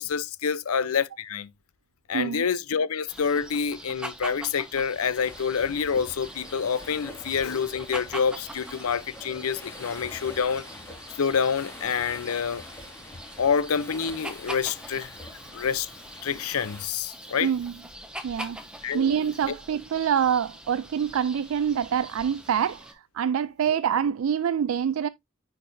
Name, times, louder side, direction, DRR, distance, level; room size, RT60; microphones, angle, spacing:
voice 1, 0.0-1.5 2.1-10.6 11.2-12.6 13.4-15.1 15.5-15.9 16.2-17.5 18.8-19.1 23.7-23.8, left 6 dB, 90° left, 0.6 m, -27 dB
voice 2, 2.1-2.4 17.4-17.7 18.2-18.6 18.9-25.1, right 8 dB, 75° right, 0.3 m, -26 dB
sound 1, 3.1-22.9, right 1 dB, 5° right, 1.0 m, -43 dB
sound 2, 5.1-16.9, left 2 dB, 10° left, 2.0 m, -45 dB
10.0 x 4.6 x 2.6 m
head